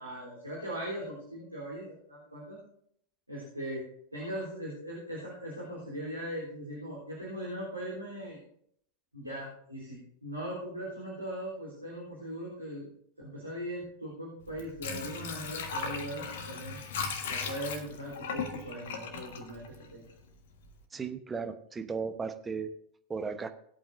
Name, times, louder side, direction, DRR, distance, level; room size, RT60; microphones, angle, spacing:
voice 1, 0.0-2.6 3.3-3.8 4.1-8.4 9.1-12.9 13.2-16.8 17.3-20.0, equal, 85° right, -6 dB, 3.7 m, -39 dB
Water / Sink (filling or washing), 14.4-20.3 20.7-20.8, left 5 dB, 55° left, 1.5 m, -37 dB
voice 2, 20.9-22.7 23.1-23.5, right 5 dB, 15° right, 8 dB, 1.0 m, -35 dB
19.5 x 8.5 x 2.6 m, 0.67 s
figure-of-eight pair, 90°, 0 cm